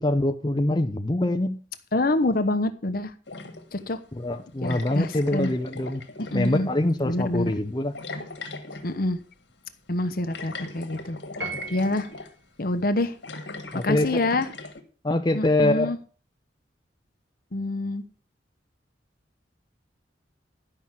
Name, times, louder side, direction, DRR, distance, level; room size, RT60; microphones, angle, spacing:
voice 1, 0.0-1.6 4.1-6.0 6.3-7.9 13.7-14.2 15.0-15.9, left 1 dB, 25° left, 0.7 m, -24 dB
voice 2, 1.9-3.1 3.7-4.0 4.6-5.5 6.2-6.7 7.0-7.5 8.8-9.2 9.9-11.2 11.7-12.1 12.6-13.2 13.8-14.5 15.3-16.0 17.5-18.0, left 2 dB, 55° left, 1.0 m, -26 dB
sound 1, 3.3-3.9 4.6-6.6 7.9-9.0 10.3-12.3 13.1-14.8, left 3 dB, 80° left, 1.7 m, -39 dB
Piano, 11.4-12.3, right 4 dB, 70° right, 3.4 m, -36 dB
11.5 x 5.7 x 7.5 m
head